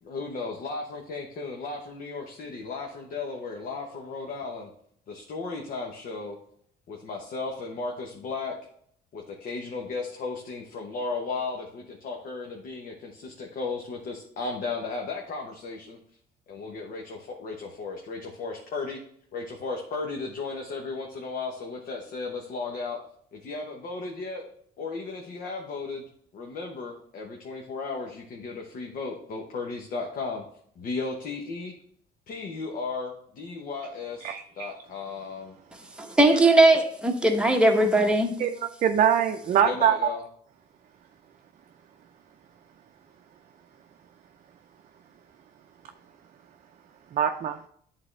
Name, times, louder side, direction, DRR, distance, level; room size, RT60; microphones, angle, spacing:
voice 1, 0.0-4.7 5.1-6.4 6.9-8.5 9.1-16.0 16.5-19.0 19.3-23.0 23.3-24.4 24.8-26.0 26.3-30.4 30.8-31.7 32.3-35.6 39.6-40.2, left 4 dB, 55° left, 1 dB, 1.1 m, -35 dB
voice 2, 34.2-34.7 38.4-38.5 38.8-40.1 47.1-47.6, right 9 dB, 45° right, 4 dB, 0.5 m, -23 dB
voice 3, 36.0-38.4, right 2 dB, 5° right, 2 dB, 1.0 m, -19 dB
9.6 x 3.8 x 3.3 m, 0.64 s
cardioid pair, 110°, 17 cm